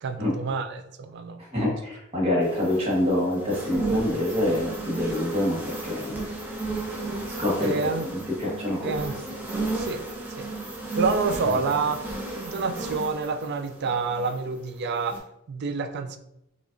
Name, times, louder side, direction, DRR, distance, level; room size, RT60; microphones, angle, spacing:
voice 1, 0.0-1.4 7.6-8.1 8.8-9.1 9.7-10.1 10.4-10.5 11.0-12.1 12.3-16.2, right 4 dB, 50° right, 9 dB, 0.3 m, -28 dB
voice 2, 1.5-6.2 7.4-7.7 8.0-8.9, left 1 dB, 30° right, -5 dB, 1.1 m, -26 dB
sound 1, 2.4-14.6 15.0-15.2, right 2 dB, 10° right, 0.6 m, -34 dB
4.7 x 2.5 x 2.5 m, 0.83 s
head